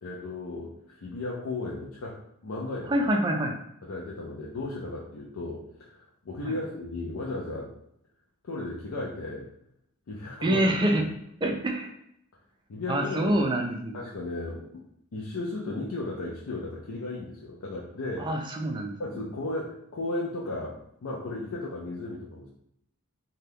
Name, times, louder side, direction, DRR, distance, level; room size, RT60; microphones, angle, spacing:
voice 1, 0.0-2.9 3.8-7.7 8.4-9.5 10.1-10.7 11.4-11.5 12.7-13.4 13.9-14.8 15.1-18.3 19.0-20.8 21.0-22.5, left 2 dB, 65° left, -4 dB, 0.5 m, -35 dB
voice 2, 2.9-3.6 6.5-6.6 10.4-11.0 11.4-11.9 12.9-14.0 18.2-18.9, right 1 dB, 20° right, 2 dB, 0.3 m, -26 dB
2.7 x 2.3 x 3.4 m, 0.76 s
head